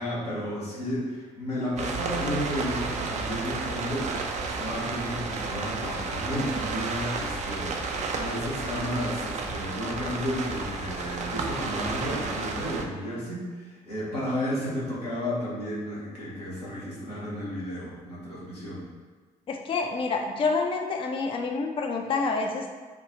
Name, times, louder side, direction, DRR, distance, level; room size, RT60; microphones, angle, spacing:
voice 1, 0.0-18.8, equal, 85° left, -8 dB, 0.9 m, -32 dB
sound 1, 1.8-12.8, right 4 dB, 35° right, 0.5 m, -32 dB
voice 2, 19.5-22.6, left 4 dB, 25° left, 2 dB, 0.4 m, -28 dB
4.4 x 2.3 x 2.8 m, 1.5 s
figure-of-eight pair, 45°, 20 cm